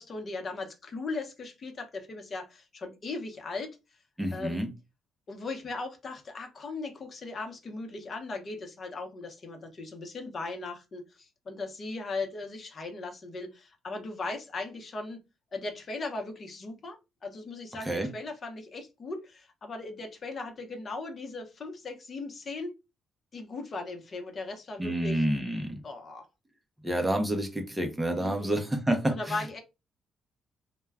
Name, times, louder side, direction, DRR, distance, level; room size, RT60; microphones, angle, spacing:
voice 1, 0.0-3.8 4.3-4.6 5.3-15.2 15.5-22.7 23.3-25.3 25.8-26.3 28.2-28.7 29.1-29.6, left 3 dB, 45° left, 0.7 m, -38 dB
voice 2, 4.2-4.7 17.9-18.1 24.8-25.7 26.8-29.2, right 1 dB, 10° right, 0.6 m, -28 dB
2.2 x 2.2 x 3.4 m
cardioid pair, 90°, 0 cm